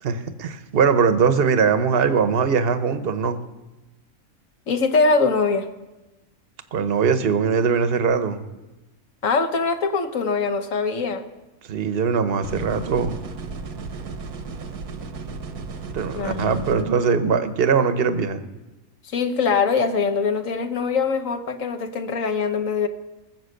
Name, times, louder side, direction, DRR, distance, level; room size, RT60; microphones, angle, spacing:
voice 1, 0.0-3.4 6.7-8.4 11.7-13.2 15.9-18.4, right 6 dB, 45° right, 10 dB, 1.0 m, -21 dB
voice 2, 4.7-5.7 9.2-11.2 16.1-17.3 19.1-22.9, left 4 dB, 60° left, 7 dB, 1.3 m, -23 dB
sound 1, 12.4-16.8, right 4 dB, 85° right, 1.6 m, -34 dB
19.5 x 7.8 x 6.5 m, 1.1 s
omnidirectional pair, 1.6 m